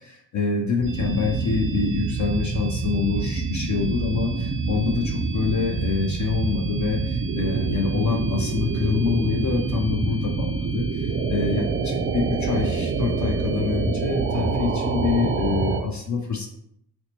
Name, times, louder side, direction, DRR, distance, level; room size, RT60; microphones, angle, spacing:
voice 1, 0.0-16.5, left 5 dB, 40° left, 2 dB, 0.6 m, -26 dB
sound 1, 0.8-15.8, right 4 dB, 30° right, 0.4 m, -26 dB
3.9 x 2.2 x 2.9 m, 0.74 s
supercardioid pair, 55°, 45 cm